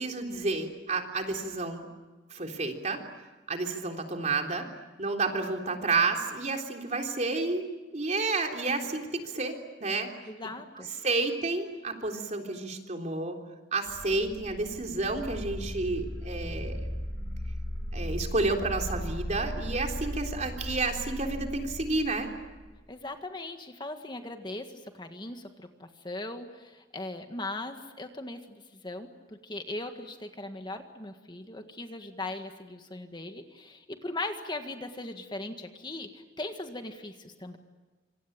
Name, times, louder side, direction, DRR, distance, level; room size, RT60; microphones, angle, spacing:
voice 1, 0.0-1.9 2.3-3.0 3.5-4.7 5.0-7.6 7.9-10.1 10.8-13.4 13.7-16.8 17.9-22.3, right 3 dB, 40° right, 3 dB, 3.6 m, -30 dB
voice 2, 10.3-10.9 22.9-37.6, left 2 dB, 25° left, 6 dB, 1.8 m, -39 dB
sound 1, 13.9-22.6, equal, 5° left, 7.8 m, -37 dB
27.0 x 25.5 x 8.8 m, 1.2 s
head